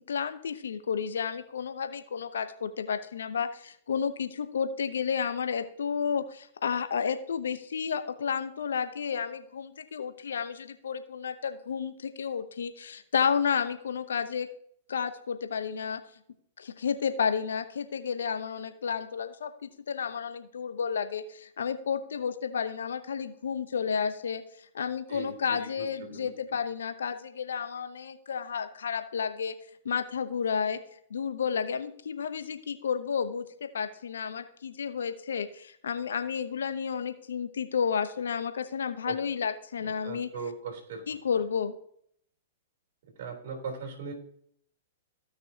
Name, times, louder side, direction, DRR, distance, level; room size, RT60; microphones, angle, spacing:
voice 1, 0.1-14.5 14.9-16.0 16.6-24.4 24.7-29.6 29.8-30.8 31.1-40.3 41.1-41.7, left 6 dB, 75° left, 10 dB, 0.9 m, -31 dB
voice 2, 25.1-26.3 39.1-39.2 40.0-41.0 43.2-44.1, right 5 dB, 60° right, 3 dB, 3.6 m, -39 dB
15.5 x 6.2 x 2.9 m, 0.67 s
hypercardioid pair, 110°, 0 cm